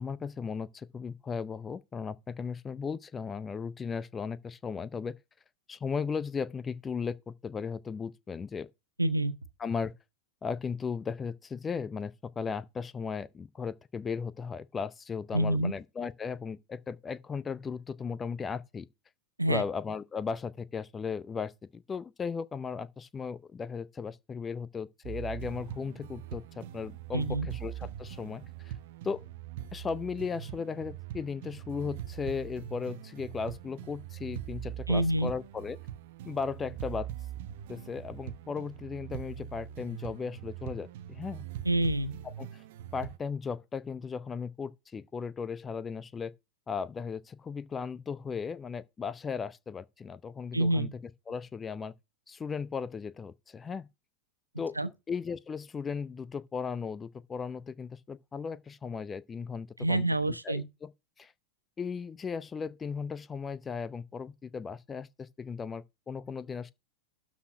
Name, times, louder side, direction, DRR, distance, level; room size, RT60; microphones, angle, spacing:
voice 1, 0.0-5.2 5.7-8.7 9.6-9.9 10.4-18.9 19.5-28.7 29.0-29.3 29.7-35.8 36.2-37.1 37.7-41.5 42.2-42.6 42.9-46.3 46.7-50.9 51.3-51.9 52.3-53.9 54.6-54.8 55.1-60.1 60.4-60.9 61.2-61.3 61.8-66.7, left 5 dB, 20° left, 0.6 m, -36 dB
voice 2, 9.0-9.3 15.3-15.7 19.4-19.6 27.1-27.5 34.9-35.3 41.6-42.1 50.5-50.9 54.8-54.9 59.8-60.6, right 1 dB, 85° right, 0.9 m, -27 dB
sound 1, 25.0-43.2, right 11 dB, 50° right, 0.8 m, -42 dB
12.5 x 4.3 x 5.7 m
figure-of-eight pair, 90°, 0 cm